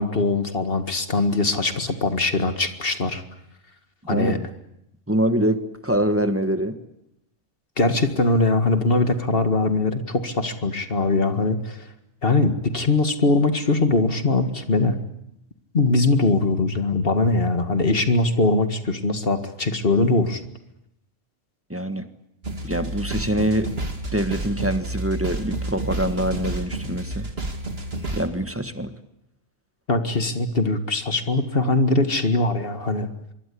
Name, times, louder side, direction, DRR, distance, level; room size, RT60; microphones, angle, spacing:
voice 1, 0.0-3.2 4.1-4.4 7.8-11.8 12.2-15.0 15.7-20.4 29.9-33.1, left 3 dB, 50° left, 8 dB, 2.1 m, -21 dB
voice 2, 4.1-4.5 5.1-6.8 21.7-22.1 22.6-27.3 28.1-28.9, right 1 dB, 10° right, 9 dB, 1.5 m, -24 dB
sound 1, 22.4-28.3, right 2 dB, 50° right, 2.6 m, -30 dB
25.5 x 22.5 x 8.6 m, 0.81 s
omnidirectional pair, 1.3 m